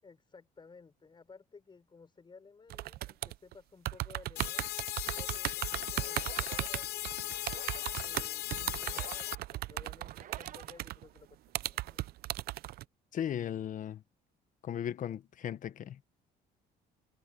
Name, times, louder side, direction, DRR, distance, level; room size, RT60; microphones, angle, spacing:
voice 1, 0.0-7.2 8.0-12.0, left 4 dB, 25° left, 5.9 m, -56 dB
sound 1, 2.7-3.5 3.8-11.2 11.5-12.8, right 16 dB, 65° right, 0.5 m, -36 dB
sound 2, 4.4-9.4, left 16 dB, 70° left, 0.6 m, -38 dB
sound 3, 5.7-11.6, right 10 dB, 50° right, 1.1 m, -54 dB
voice 2, 13.1-14.0 14.6-16.0, left 10 dB, 50° left, 1.2 m, -36 dB
cardioid pair, 110°, 17 cm